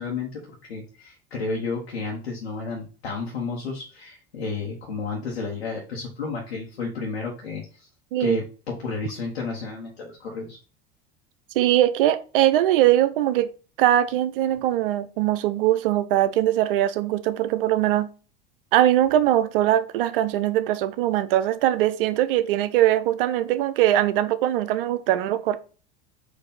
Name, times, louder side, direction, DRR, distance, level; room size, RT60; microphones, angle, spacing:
voice 1, 0.0-7.9 8.2-10.6, left 4 dB, 75° left, 1.1 m, -32 dB
voice 2, 11.6-13.5 13.8-18.1 18.7-25.6, right 13 dB, 60° right, 0.5 m, -21 dB
4.4 x 2.6 x 3.8 m
figure-of-eight pair, 75°, 32 cm